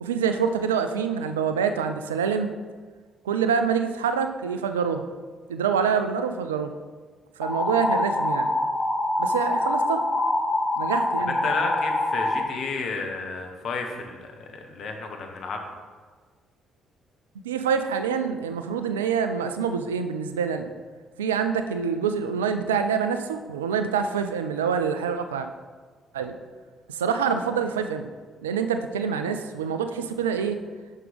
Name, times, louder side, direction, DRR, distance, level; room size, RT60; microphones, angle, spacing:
voice 1, 0.0-2.5 3.3-5.1 5.5-6.7 7.4-8.5 9.2-10.0 10.8-11.4 17.4-20.7 21.2-25.5 26.1-26.3 26.9-28.1 28.4-30.6, right 6 dB, 85° right, 8 dB, 0.3 m, -26 dB
sound 1, 7.4-12.4, left 2 dB, 20° left, 0.8 m, -25 dB
voice 2, 11.3-15.6, left 4 dB, 55° left, 4 dB, 1.0 m, -32 dB
6.5 x 6.2 x 3.5 m, 1.5 s
hypercardioid pair, 45°, 0 cm